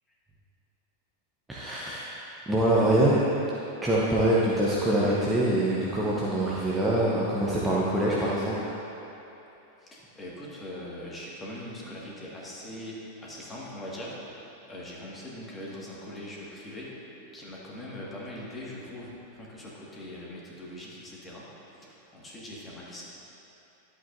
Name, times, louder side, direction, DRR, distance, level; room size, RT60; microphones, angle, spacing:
voice 1, 1.5-2.2 2.5-3.2 3.8-8.7, right 1 dB, 10° right, -7 dB, 1.0 m, -24 dB
voice 2, 9.8-17.0 17.3-21.5 21.8-23.0, left 1 dB, 15° left, -6 dB, 2.0 m, -41 dB
11.5 x 8.1 x 2.7 m, 3.0 s
figure-of-eight pair, 90°, 0 cm